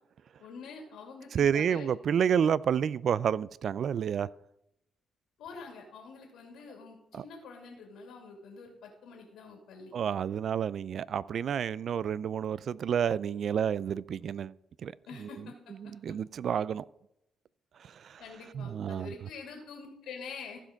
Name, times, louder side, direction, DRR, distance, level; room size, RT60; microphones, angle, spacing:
voice 1, 0.4-1.9 5.4-9.9 15.1-15.5 18.2-20.6, left 4 dB, 80° left, 2.5 m, -46 dB
voice 2, 1.3-4.3 7.1-7.2 9.9-14.5 14.8-14.9 15.2-15.3 15.8-16.8 17.8-18.2 18.5-19.1, right 8 dB, 60° right, 0.3 m, -29 dB
15.0 x 5.1 x 5.1 m
cardioid pair, 90°, 0 cm